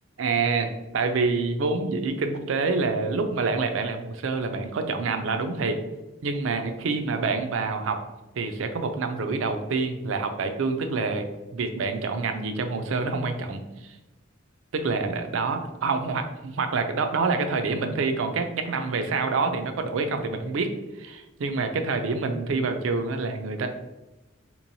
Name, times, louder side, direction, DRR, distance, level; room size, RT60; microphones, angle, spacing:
voice 1, 0.2-5.8 6.2-8.0 8.4-11.3 11.5-14.0 14.7-23.7, right 4 dB, 75° right, 7 dB, 0.4 m, -27 dB
3.7 x 3.0 x 2.6 m, 1.0 s
head